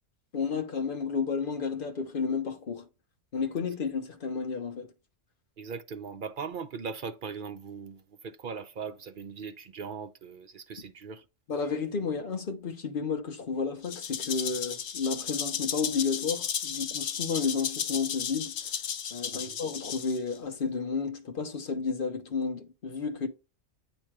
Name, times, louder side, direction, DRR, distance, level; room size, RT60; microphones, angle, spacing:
voice 1, 0.3-2.9 3.3-4.9 11.5-18.6 19.1-23.3, left 5 dB, 45° left, 1.1 m, -32 dB
voice 2, 5.6-11.3 19.3-19.6, right 5 dB, 55° right, 0.6 m, -39 dB
Rattle (instrument), 13.8-20.4, left 8 dB, 85° left, 1.1 m, -34 dB
8.8 x 3.0 x 4.6 m
omnidirectional pair, 1.3 m